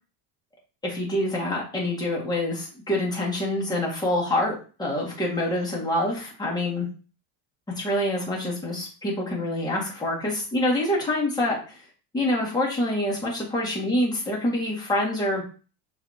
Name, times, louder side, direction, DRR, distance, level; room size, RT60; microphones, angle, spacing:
voice 1, 0.8-6.9 7.8-11.8 12.1-15.4, left 1 dB, 10° left, -4 dB, 1.9 m, -26 dB
5.6 x 3.3 x 2.8 m, 0.36 s
cardioid pair, 130°, 44 cm